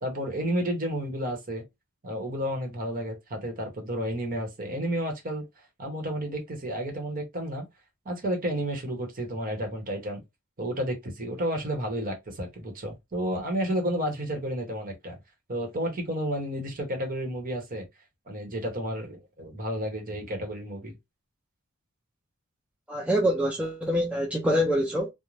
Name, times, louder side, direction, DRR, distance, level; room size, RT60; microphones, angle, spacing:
voice 1, 0.0-1.6 2.0-5.4 5.8-7.6 8.0-10.2 10.6-15.2 15.5-17.8 18.3-20.9, equal, 40° right, 0.9 m, -31 dB
voice 2, 22.9-25.1, equal, 5° right, 0.4 m, -25 dB
2.5 x 2.1 x 3.1 m
head